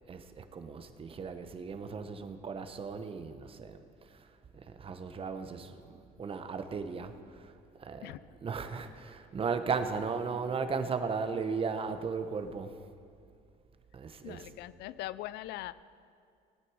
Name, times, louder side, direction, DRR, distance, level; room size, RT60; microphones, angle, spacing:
voice 1, 0.1-3.8 4.5-7.5 7.8-8.1 8.4-12.7 13.9-14.5, right 5 dB, 35° right, 9 dB, 0.9 m, -36 dB
voice 2, 14.2-15.7, left 15 dB, 80° left, 17 dB, 0.4 m, -41 dB
18.0 x 9.1 x 4.8 m, 2.3 s
cardioid pair, 110°, 17 cm